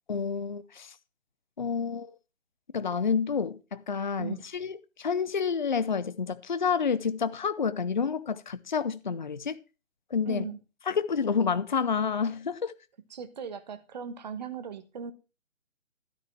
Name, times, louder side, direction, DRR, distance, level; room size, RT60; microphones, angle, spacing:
voice 1, 0.1-0.9 1.6-2.1 2.7-9.6 10.1-10.5 10.9-12.7, left 6 dB, 35° left, 0.5 m, -29 dB
voice 2, 10.3-10.6 13.1-15.1, right 6 dB, 30° right, 1.2 m, -38 dB
13.0 x 5.7 x 5.9 m
figure-of-eight pair, 145°, 40 cm